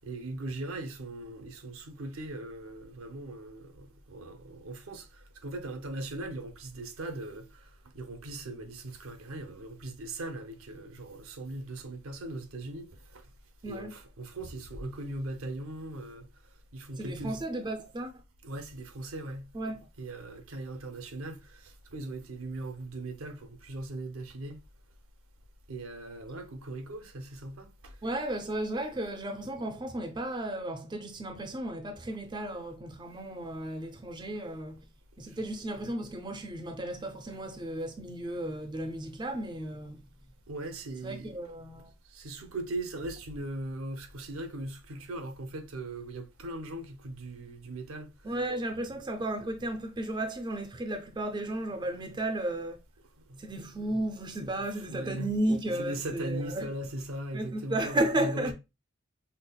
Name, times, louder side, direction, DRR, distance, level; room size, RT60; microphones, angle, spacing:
voice 1, 0.0-5.1 5.4-7.4 7.9-12.9 13.7-16.3 16.7-17.4 18.4-19.4 20.0-21.4 21.9-24.6 25.7-27.9 40.5-41.4 42.1-48.1 53.3-53.4 54.4-55.3 55.8-58.5, right 1 dB, 80° right, 0.6 m, -39 dB
voice 2, 13.6-14.0 17.0-18.1 19.5-19.8 28.0-34.8 35.2-40.0 41.0-41.9 48.2-52.8 53.4-56.7 57.3-58.5, right 1 dB, 20° right, 0.4 m, -34 dB
5.4 x 2.0 x 2.2 m
head